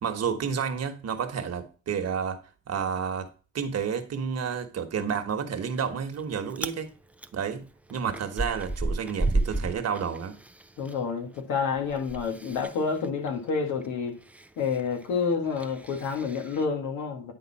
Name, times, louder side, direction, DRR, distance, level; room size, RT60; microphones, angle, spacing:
voice 1, 0.0-3.3 3.5-6.9 7.3-7.6 7.9-10.4, right 7 dB, 55° right, 1.2 m, -30 dB
Chewing mastication, 5.7-6.2 6.5-6.8 7.2-11.0 11.3-16.7, right 2 dB, 5° right, 0.4 m, -33 dB
voice 2, 10.8-14.2 14.6-17.3, left 5 dB, 90° left, 1.7 m, -29 dB
9.7 x 4.0 x 4.1 m
cardioid pair, 90°, 30 cm